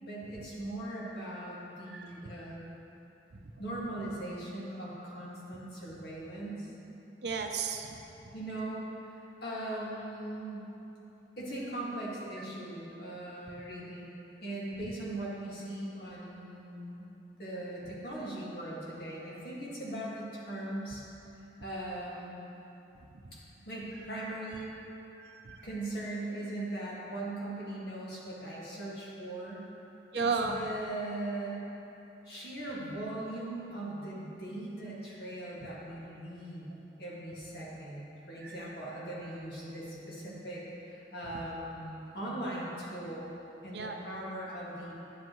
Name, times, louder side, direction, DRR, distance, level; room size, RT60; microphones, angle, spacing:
voice 1, 0.0-2.7 3.6-6.7 8.3-10.7 11.4-14.1 14.4-17.0 17.4-21.0 21.6-22.4 23.3-23.4 23.7-24.7 25.6-29.7 30.1-31.6 32.3-36.7 37.0-43.3 43.6-44.9, right 1 dB, 60° left, -6 dB, 2.0 m, -39 dB
voice 2, 7.2-7.9 25.2-25.6 30.1-30.6 38.4-38.6 43.7-44.0, right 5 dB, 60° right, 4 dB, 0.6 m, -33 dB
11.0 x 7.6 x 3.1 m, 3.0 s
head